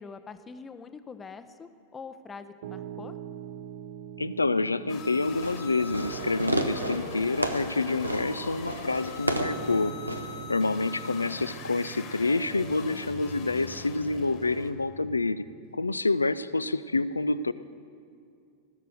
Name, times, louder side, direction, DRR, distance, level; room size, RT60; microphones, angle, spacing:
voice 1, 0.0-3.2, left 5 dB, 20° left, 11 dB, 0.6 m, -44 dB
Piano, 2.6-16.0, right 11 dB, 50° right, 0.3 m, -44 dB
voice 2, 4.2-9.9 10.5-15.4 15.7-17.5, left 3 dB, 80° left, 15 dB, 0.3 m, -28 dB
sound 1, 4.9-14.7, left 6 dB, 40° left, 1.4 m, -43 dB
Fireworks, 5.3-10.4, right 1 dB, 85° right, 0.7 m, -33 dB
15.0 x 6.7 x 7.8 m, 2.4 s
figure-of-eight pair, 90°, 0 cm